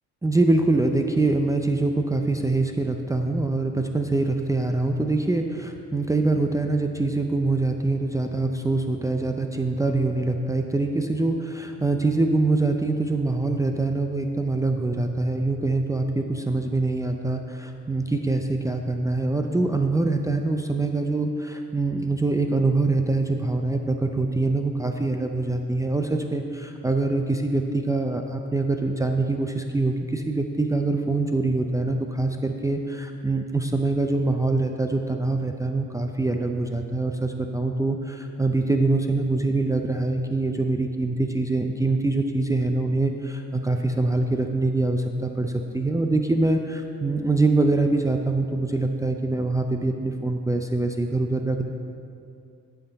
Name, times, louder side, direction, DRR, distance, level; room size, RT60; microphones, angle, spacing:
voice 1, 0.2-51.6, right 2 dB, 10° right, 4 dB, 0.5 m, -24 dB
12.5 x 5.8 x 4.0 m, 2.4 s
cardioid pair, 90°, 30 cm